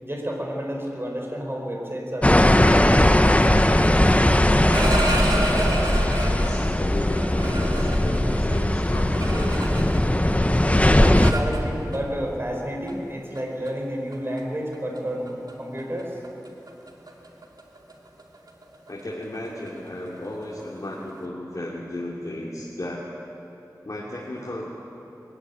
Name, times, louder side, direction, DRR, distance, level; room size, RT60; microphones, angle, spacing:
voice 1, 0.0-2.7 11.0-16.2, equal, 35° right, 0 dB, 5.1 m, -30 dB
sound 1, 2.2-11.3, left 1 dB, 20° left, 1.1 m, -19 dB
sound 2, 4.5-6.6 7.1-10.2 10.4-12.0 12.9-13.0 13.4-13.7 14.1-14.4 14.7-15.0 15.3-15.5 15.8-21.2, right 2 dB, 70° right, 2.5 m, -32 dB
voice 2, 5.5-9.7 18.9-23.0 23.8-24.7, left 1 dB, 55° left, -5 dB, 2.8 m, -34 dB
21.5 x 15.5 x 9.9 m, 3.0 s
wide cardioid pair, 55°, 7 cm